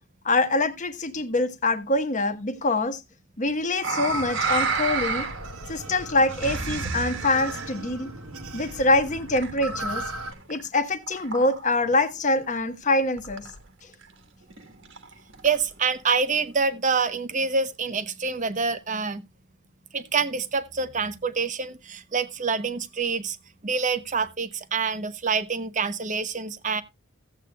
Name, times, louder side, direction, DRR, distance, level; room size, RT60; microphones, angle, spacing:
voice 1, 0.2-3.0 3.4-5.2 5.7-8.1 8.5-10.0 10.5-13.5, left 2 dB, 35° left, 1.1 m, -24 dB
sound 1, 3.8-5.6 5.9-7.7 8.6-9.9 10.2-10.7 11.1-11.9 12.2-12.3 12.5-12.6 12.8-12.9 13.2-13.6 13.9-14.0 14.5-15.8 16.4-16.5, right 4 dB, 55° right, 1.4 m, -31 dB
sound 2, 4.1-10.3, right 1 dB, 80° right, 1.3 m, -37 dB
voice 2, 15.4-19.2 19.9-23.4 23.6-26.8, right 5 dB, 35° right, 0.8 m, -26 dB
16.0 x 8.1 x 2.2 m
head